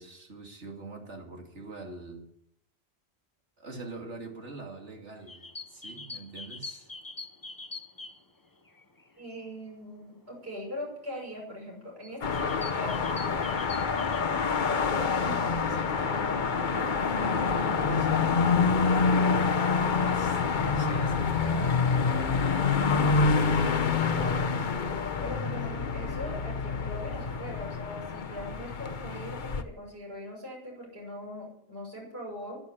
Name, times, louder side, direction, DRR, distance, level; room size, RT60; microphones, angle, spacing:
voice 1, 0.0-2.3 3.6-6.9 15.2-18.5 18.8-19.5 20.0-22.7, right 3 dB, 90° right, 2 dB, 2.9 m, -43 dB
sound 1, 5.2-9.2 9.7-9.9 10.9-11.0 11.5-11.7 12.0-14.2, left 3 dB, 20° left, 0.9 m, -44 dB
voice 2, 9.2-13.1 25.2-32.6, left 1 dB, 60° right, -2 dB, 6.6 m, -41 dB
sound 2, 12.2-29.6, left 5 dB, 45° left, 1.0 m, -27 dB
11.0 x 10.5 x 8.6 m, 0.75 s
omnidirectional pair, 1.1 m